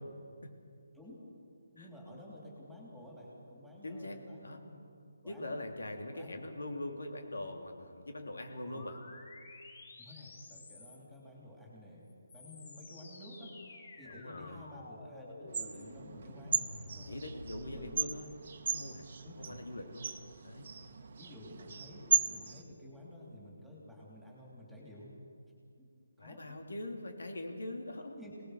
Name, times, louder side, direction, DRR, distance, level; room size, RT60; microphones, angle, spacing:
voice 1, 1.7-4.9 5.2-5.6 6.1-6.4 8.6-8.9 10.0-12.1 12.3-13.6 13.9-17.2 17.7-18.1 19.2-19.9 21.2-25.1 25.8-25.9 26.2-26.6 28.0-28.3, left 1 dB, ahead, -5 dB, 3.2 m, -52 dB
voice 2, 3.8-4.6 5.2-9.0 14.1-14.6 17.1-18.3 18.7-20.1 20.4-20.7 26.2-28.1, left 1 dB, 85° left, 3 dB, 3.2 m, -42 dB
sound 1, 8.5-11.2 12.1-18.0, left 2 dB, 40° left, 4.3 m, -51 dB
sound 2, 15.5-22.6, right 6 dB, 40° right, 1.3 m, -37 dB
25.5 x 19.0 x 6.6 m, 2.3 s
hypercardioid pair, 170°, 0 cm